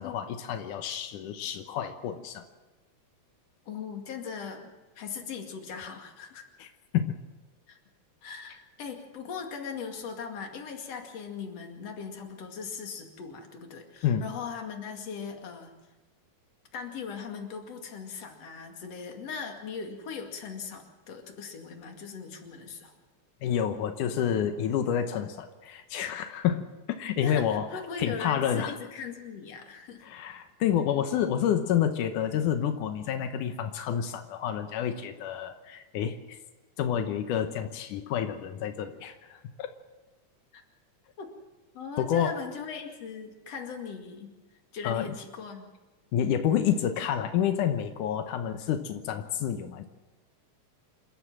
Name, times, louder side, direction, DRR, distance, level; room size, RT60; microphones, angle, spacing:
voice 1, 0.0-2.4 6.6-6.7 6.9-7.2 14.0-14.2 23.4-26.7 27.0-28.8 30.0-36.4 36.8-39.7 42.0-42.4 44.8-45.1 46.1-49.9, left 9 dB, 90° left, 7 dB, 2.6 m, -29 dB
voice 2, 3.7-6.5 7.7-7.8 8.2-15.7 16.7-22.9 27.2-30.1 40.5-40.6 41.2-41.3 41.7-44.3 44.7-45.7, left 6 dB, 55° left, 3 dB, 3.3 m, -39 dB
27.5 x 13.0 x 7.4 m, 1.2 s
omnidirectional pair, 3.5 m